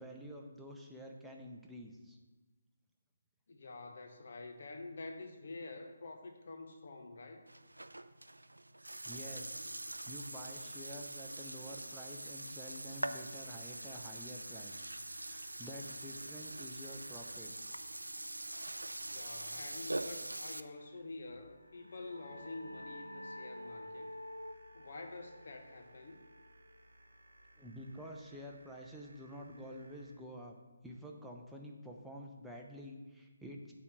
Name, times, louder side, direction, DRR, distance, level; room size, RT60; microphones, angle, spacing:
voice 1, 0.0-2.2 9.0-14.8 15.1-17.5 27.6-30.6 30.8-33.7, equal, ahead, -1 dB, 0.6 m, -49 dB
voice 2, 3.5-7.5 19.0-24.1 24.7-26.2, left 3 dB, 50° left, 5 dB, 0.9 m, -48 dB
Burping eructation, 7.5-20.6, right 1 dB, 75° right, 0.3 m, -44 dB
sound 1, 13.6-30.1, right 1 dB, 60° right, 0.9 m, -63 dB
sound 2, 21.5-26.9, left 1 dB, 85° left, 0.5 m, -50 dB
8.1 x 3.7 x 5.9 m, 1.2 s
figure-of-eight pair, 145°, 0 cm